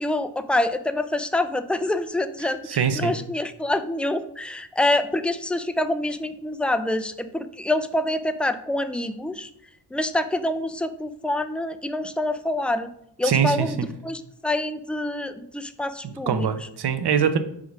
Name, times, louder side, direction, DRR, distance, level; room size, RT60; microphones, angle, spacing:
voice 1, 0.0-9.5 9.9-12.9 13.2-16.5, left 1 dB, 5° left, 10 dB, 0.3 m, -26 dB
voice 2, 2.7-3.1 13.2-13.9 16.0-17.4, right 7 dB, 70° right, 10 dB, 0.8 m, -23 dB
5.0 x 4.9 x 5.2 m, 0.74 s
wide cardioid pair, 125°, 41 cm